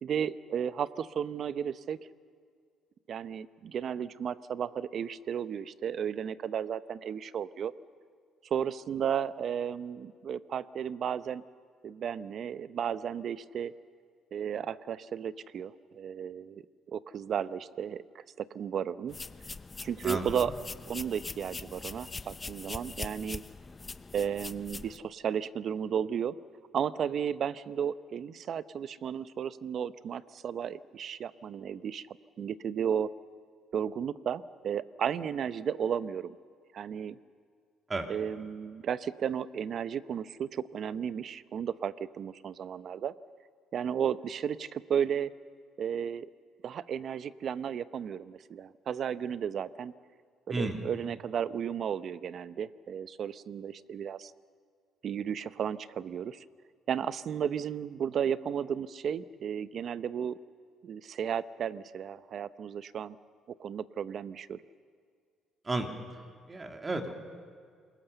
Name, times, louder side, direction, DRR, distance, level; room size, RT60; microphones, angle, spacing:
voice 1, 0.0-2.0 3.1-7.7 8.4-11.4 11.8-13.7 14.3-19.2 19.8-20.5 20.9-23.4 24.1-26.4 26.7-33.1 33.7-36.4 36.7-37.2 38.1-43.2 43.7-45.3 45.8-46.3 46.6-49.9 50.5-54.3 55.0-56.4 56.9-60.4 60.8-63.2 63.6-64.6, right 8 dB, 60° right, 15 dB, 0.8 m, -34 dB
sound 1, 19.1-25.0, left 3 dB, 25° left, 0.7 m, -42 dB
voice 2, 20.0-20.5 37.9-38.1 50.5-50.8 65.6-66.0 66.5-67.1, right 2 dB, 25° right, 4 dB, 3.0 m, -33 dB
27.0 x 21.5 x 6.9 m, 2.1 s
supercardioid pair, 80°, 0 cm